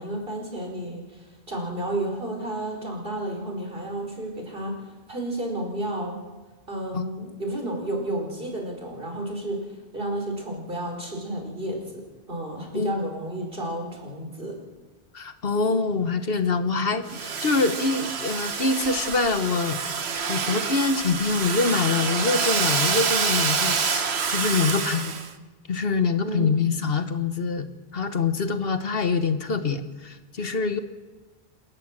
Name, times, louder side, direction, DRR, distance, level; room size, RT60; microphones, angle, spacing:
voice 1, 0.0-4.8 5.1-6.2 6.7-14.5 26.2-26.5, right 1 dB, 60° right, 1 dB, 5.1 m, -31 dB
voice 2, 15.1-19.8 20.3-25.1 25.7-27.7 27.9-30.8, left 4 dB, 65° left, 10 dB, 1.4 m, -25 dB
Domestic sounds home sounds, 17.1-25.3, right 5 dB, 90° right, 1.5 m, -27 dB
29.0 x 14.0 x 7.4 m, 1.3 s
omnidirectional pair, 1.0 m